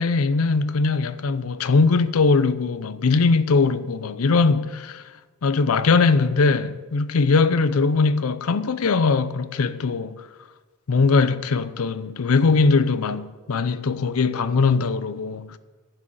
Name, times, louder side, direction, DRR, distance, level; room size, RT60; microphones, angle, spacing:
voice 1, 0.0-5.0 5.4-10.2 10.9-15.6, left 4 dB, 70° left, 0.6 m, -20 dB
11.5 x 6.2 x 7.9 m
head